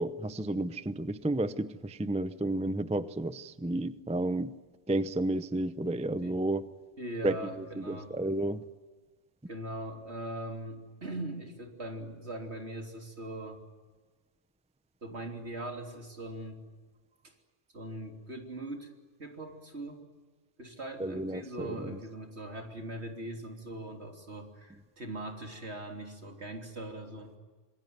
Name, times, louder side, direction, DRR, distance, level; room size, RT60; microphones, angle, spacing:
voice 1, 0.0-4.5 4.9-6.6 7.2-7.4 7.8-8.6 21.0-22.0, right 1 dB, 10° right, 13 dB, 0.5 m, -31 dB
voice 2, 7.0-8.1 9.5-13.6 15.0-16.6 17.2-17.3 17.7-18.9 19.2-20.0 20.6-27.4, right 1 dB, 60° right, 3 dB, 3.6 m, -41 dB
26.5 x 22.0 x 9.5 m, 1.3 s
omnidirectional pair, 1.3 m